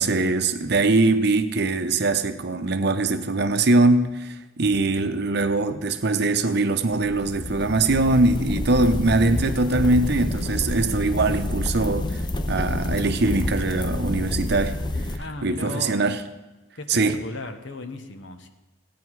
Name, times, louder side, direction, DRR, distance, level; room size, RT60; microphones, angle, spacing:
voice 1, 0.0-12.2 12.5-14.8 15.4-16.2 16.9-17.2, right 2 dB, 55° right, 9 dB, 0.8 m, -22 dB
sound 1, 6.9-15.2, left 1 dB, 20° left, 0.6 m, -28 dB
voice 2, 15.2-16.0 16.8-18.5, left 2 dB, 65° left, 7 dB, 1.1 m, -36 dB
16.5 x 9.3 x 4.7 m, 1.1 s
head